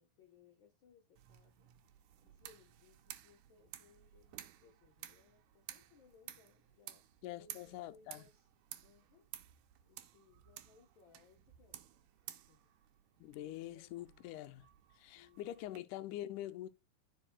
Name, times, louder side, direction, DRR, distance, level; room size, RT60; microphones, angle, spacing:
voice 1, 0.0-7.1 7.3-8.5 8.8-9.3 9.6-12.6 13.7-14.3 15.1-15.7, left 5 dB, 65° left, 1.2 m, -67 dB
sound 1, 1.2-15.8, right 13 dB, 90° right, 2.2 m, -55 dB
voice 2, 7.2-8.2 13.2-14.7 14.9-16.7, left 13 dB, 80° left, 2.1 m, -45 dB
13.5 x 4.8 x 2.2 m
omnidirectional pair, 3.6 m